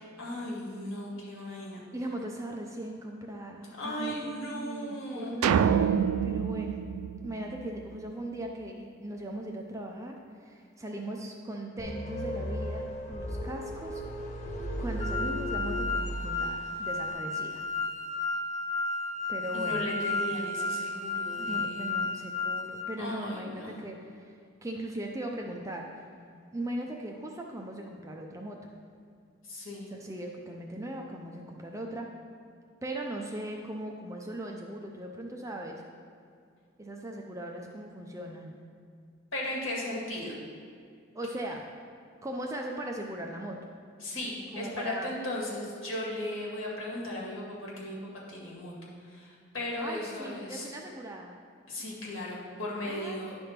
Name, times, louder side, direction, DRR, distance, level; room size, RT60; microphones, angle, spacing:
voice 1, 0.0-1.8 3.8-5.4 19.5-21.8 23.0-23.7 29.5-29.9 39.3-40.4 44.0-48.0 48.3-48.7 49.1-50.7 51.7-53.4, left 1 dB, 60° left, -4 dB, 2.0 m, -36 dB
voice 2, 1.9-6.8 7.2-14.0 14.8-17.6 19.3-19.8 21.4-24.3 24.6-25.9 26.5-28.6 29.9-32.1 32.8-35.8 36.8-38.6 41.1-41.6 42.2-43.7 44.5-45.1 49.8-51.4 52.8-53.2, right 1 dB, 15° right, 1 dB, 0.5 m, -39 dB
sound 1, 5.4-8.0, right 7 dB, 75° right, 0.3 m, -27 dB
sound 2, 11.8-16.8, equal, 30° left, 0.9 m, -35 dB
sound 3, 15.0-22.8, left 3 dB, 35° right, 1.1 m, -33 dB
10.0 x 3.5 x 5.8 m, 2.3 s
head